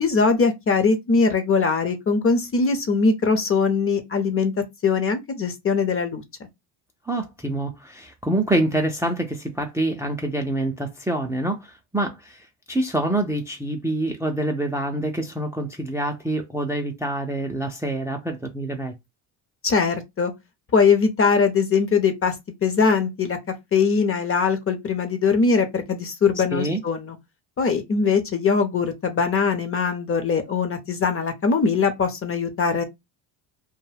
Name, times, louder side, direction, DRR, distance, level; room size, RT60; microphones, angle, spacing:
voice 1, 0.0-4.5 4.8-6.2 19.6-20.3 20.7-22.3 22.6-23.4 23.7-27.2 27.6-32.8, left 5 dB, 30° left, 0.8 m, -21 dB
voice 2, 7.0-18.9 26.5-26.8, right 1 dB, 5° right, 0.5 m, -26 dB
2.3 x 2.2 x 3.3 m
supercardioid pair, 80°, 46 cm